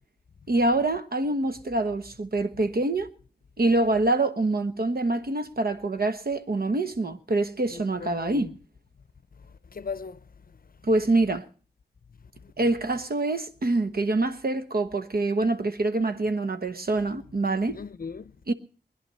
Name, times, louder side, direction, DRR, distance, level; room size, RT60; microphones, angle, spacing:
voice 1, 0.5-3.1 3.6-8.5 10.8-11.4 12.6-17.8 18.5-18.6, right 2 dB, 55° right, 1.2 m, -25 dB
voice 2, 7.7-8.5 9.7-10.3 12.4-12.5 17.7-18.5, left 5 dB, 55° left, 0.6 m, -38 dB
20.5 x 10.5 x 5.5 m
wide cardioid pair, 75°, 18 cm